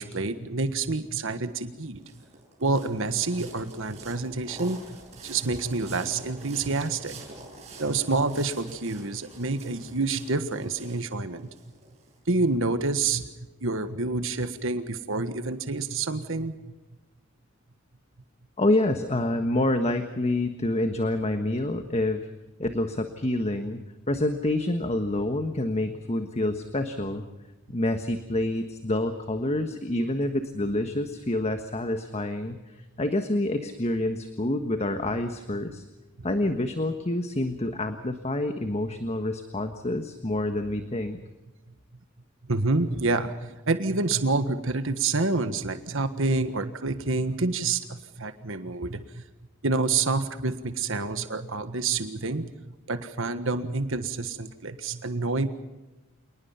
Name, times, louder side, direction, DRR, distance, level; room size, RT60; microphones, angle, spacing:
voice 1, 0.0-2.0 2.6-4.8 5.2-7.1 7.8-11.5 12.3-13.3 13.6-16.5 42.5-49.2 49.6-52.5 52.9-55.5, right 3 dB, 70° right, 10 dB, 1.5 m, -28 dB
sound 1, 1.6-12.4, right 2 dB, 35° right, 6.6 m, -46 dB
voice 2, 18.6-22.3 22.6-23.8 24.1-27.2 27.7-35.8 36.2-41.2, left 1 dB, 30° left, 7 dB, 1.4 m, -27 dB
28.0 x 20.0 x 5.8 m, 1.1 s
head